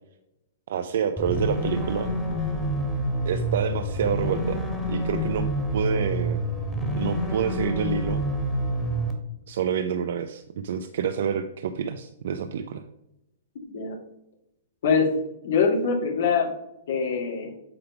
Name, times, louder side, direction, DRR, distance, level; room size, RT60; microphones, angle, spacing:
voice 1, 0.7-2.1 3.2-5.5 5.7-6.4 7.0-8.2 9.5-12.8, right 7 dB, 65° right, 8 dB, 0.5 m, -28 dB
sound 1, 1.2-9.1, equal, 5° left, 1.7 m, -27 dB
voice 2, 15.4-16.5 16.9-17.5, left 5 dB, 70° left, -1 dB, 2.1 m, -23 dB
8.6 x 3.5 x 5.8 m, 0.84 s
hypercardioid pair, 135°, 0 cm